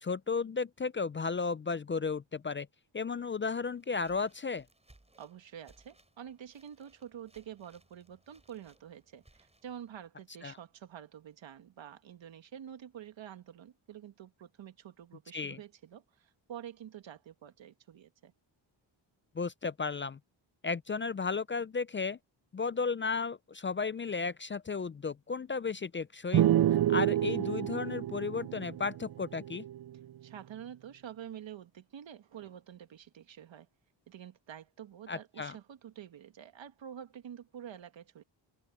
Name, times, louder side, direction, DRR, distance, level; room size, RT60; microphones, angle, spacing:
voice 1, 0.0-2.7 2.9-4.7 10.4-10.6 15.3-15.6 19.4-20.2 20.6-22.2 22.5-26.5 26.9-29.6 35.1-35.6, left 4 dB, 25° left, 0.4 m, -34 dB
sound 1, 3.6-10.1, right 2 dB, 15° right, 7.6 m, -66 dB
voice 2, 5.2-18.3 30.2-33.7 34.1-38.2, right 9 dB, 75° right, 2.0 m, -48 dB
sound 2, 26.3-29.9, right 12 dB, 55° right, 0.6 m, -28 dB
cardioid pair, 95°, 46 cm